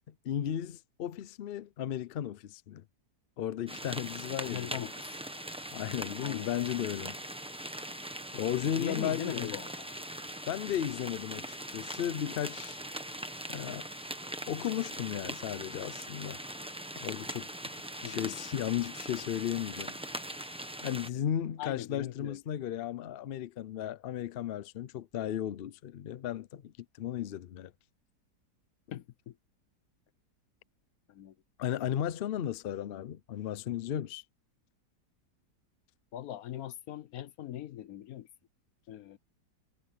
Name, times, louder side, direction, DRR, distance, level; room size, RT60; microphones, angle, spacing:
voice 1, 0.0-2.8 3.4-4.8 5.7-7.2 8.3-9.6 10.5-12.8 13.5-13.9 14.5-16.4 17.0-17.5 18.0-20.0 20.8-26.7 27.0-27.7 31.6-34.2, left 10 dB, 80° left, 0.5 m, -35 dB
sound 1, 3.7-21.1, right 1 dB, 5° right, 0.9 m, -41 dB
voice 2, 4.4-5.1 6.2-6.5 8.8-9.9 18.0-18.3 21.6-22.4 28.9-29.3 31.1-31.3 36.1-38.3 38.9-39.2, left 11 dB, 65° left, 1.1 m, -40 dB
omnidirectional pair, 1.8 m